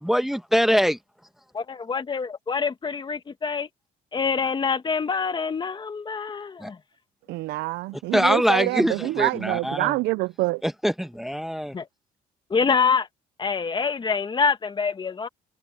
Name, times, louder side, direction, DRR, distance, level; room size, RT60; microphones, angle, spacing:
voice 1, 0.0-1.0 6.6-6.7 8.1-9.9 10.6-11.7, equal, ahead, 1.2 m, -23 dB
voice 2, 1.5-3.7 4.1-6.8 11.7-11.9 12.5-13.1 13.4-15.3, left 5 dB, 25° left, 1.5 m, -25 dB
voice 3, 7.3-10.6, right 20 dB, 85° right, 0.5 m, -26 dB
cardioid pair, 110°, 17 cm